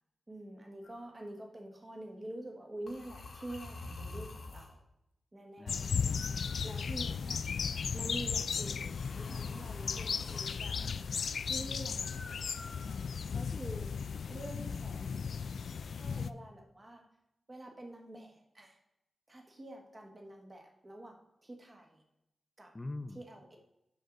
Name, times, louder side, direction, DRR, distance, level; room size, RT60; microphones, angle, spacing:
voice 1, 0.3-4.8 5.3-5.9 6.6-7.4 7.9-10.8 11.4-12.0 13.3-14.0 14.3-15.1 15.9-17.0 17.5-18.8 19.3-22.0 22.6-22.7 23.1-23.6, right 1 dB, 25° right, 2 dB, 1.4 m, -47 dB
sound 1, 0.8-1.1 2.9-4.8 6.1-7.3 8.8-10.6 12.0-13.2, left 3 dB, 55° left, 1.2 m, -48 dB
voice 2, 5.6-6.3 10.8-11.1 11.8-12.4 13.5-13.6 14.3-14.4 14.7-15.5 22.7-23.2, left 2 dB, 20° left, 11 dB, 0.5 m, -47 dB
sound 2, 5.7-16.3, left 6 dB, 75° left, 0.3 m, -36 dB
7.8 x 6.3 x 3.9 m, 0.84 s
wide cardioid pair, 150°, 0 cm